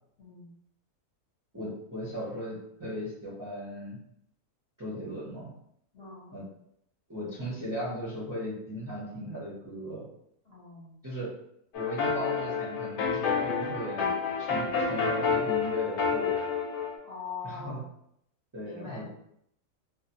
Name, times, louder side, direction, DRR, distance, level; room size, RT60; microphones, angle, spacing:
voice 1, 0.2-0.5 5.9-6.4 10.5-11.0 17.0-17.8 18.6-19.1, left 5 dB, 50° left, -6 dB, 0.8 m, -42 dB
voice 2, 1.5-4.0 4.8-5.5 6.3-6.4 7.1-10.0 11.0-11.3 11.7-14.1 14.4-16.4 17.4-17.8 18.5-19.1, equal, 20° right, -11 dB, 0.5 m, -37 dB
sound 1, 11.7-17.0, left 5 dB, 75° left, 1.0 m, -29 dB
2.4 x 2.3 x 2.8 m, 0.74 s
omnidirectional pair, 1.6 m